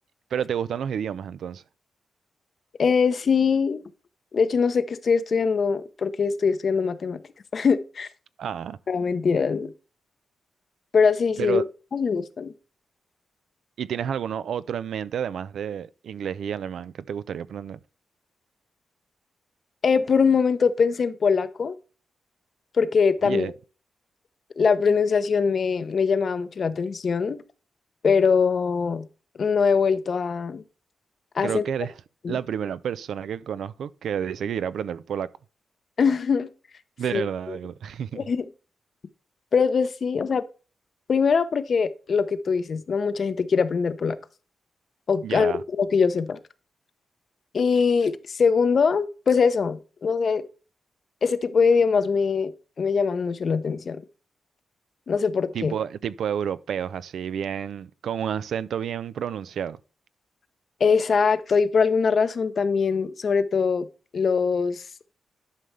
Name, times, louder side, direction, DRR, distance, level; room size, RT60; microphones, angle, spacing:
voice 1, 0.3-1.6 8.4-8.8 11.4-11.6 13.8-17.8 23.2-23.5 31.4-31.9 32.3-35.3 37.0-38.2 45.2-45.6 55.5-59.8, right 8 dB, 85° right, 0.4 m, -30 dB
voice 2, 2.8-3.8 4.3-7.2 7.5-8.1 8.9-9.7 10.9-11.6 11.9-12.5 19.8-21.8 22.8-23.5 24.6-27.4 28.0-29.1 29.4-30.6 31.3-31.7 32.2-32.4 36.0-36.5 37.1-37.2 37.5-37.6 38.1-38.5 39.5-40.4 41.1-44.2 45.1-46.4 47.5-50.4 51.2-54.0 55.1-55.7 60.8-63.9 64.1-64.8, left 5 dB, 50° left, 0.7 m, -22 dB
11.5 x 5.4 x 3.2 m
cardioid pair, 110°, 0 cm